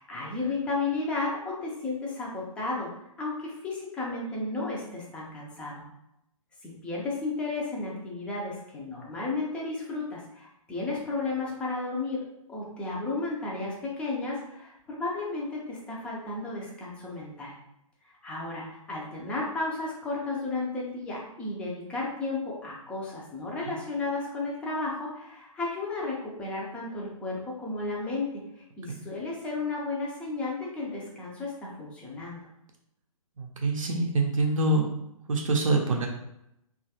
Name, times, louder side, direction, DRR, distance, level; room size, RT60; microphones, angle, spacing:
voice 1, 0.0-2.9 3.2-5.7 6.6-12.2 12.5-17.5 18.1-32.5, left 3 dB, 5° left, -3 dB, 0.4 m, -33 dB
voice 2, 33.4-34.9 35.3-36.1, right 2 dB, 65° right, 1 dB, 0.5 m, -25 dB
3.0 x 2.3 x 2.8 m, 0.83 s
figure-of-eight pair, 130°, 18 cm